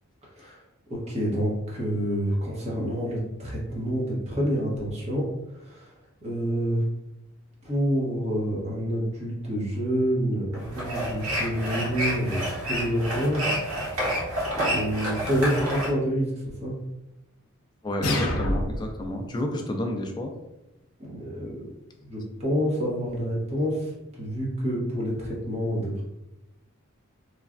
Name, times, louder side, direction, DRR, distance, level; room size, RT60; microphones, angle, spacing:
voice 1, 0.9-5.3 5.6-5.9 6.2-6.8 7.6-13.5 14.5-16.8 21.0-21.7 22.1-26.0, equal, 30° right, -4 dB, 0.9 m, -28 dB
sound 1, 10.5-15.9, equal, 75° right, 0.8 m, -29 dB
voice 2, 17.8-20.3, left 1 dB, 20° left, 3 dB, 0.3 m, -30 dB
sound 2, 18.0-19.0, left 1 dB, 75° left, 0.5 m, -26 dB
3.1 x 2.2 x 2.4 m, 0.91 s
head